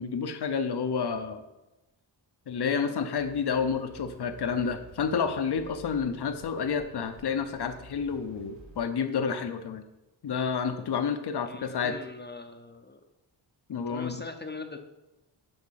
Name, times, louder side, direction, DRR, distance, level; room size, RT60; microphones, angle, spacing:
voice 1, 0.0-1.4 2.5-9.8 10.2-12.0 13.7-14.2, left 6 dB, 55° left, 8 dB, 0.8 m, -30 dB
sound 1, 3.2-8.9, right 1 dB, 65° right, 3.3 m, -52 dB
voice 2, 11.5-13.0 13.9-14.8, left 3 dB, 20° left, 6 dB, 0.7 m, -41 dB
7.9 x 5.7 x 7.5 m, 0.99 s
wide cardioid pair, 165°, 47 cm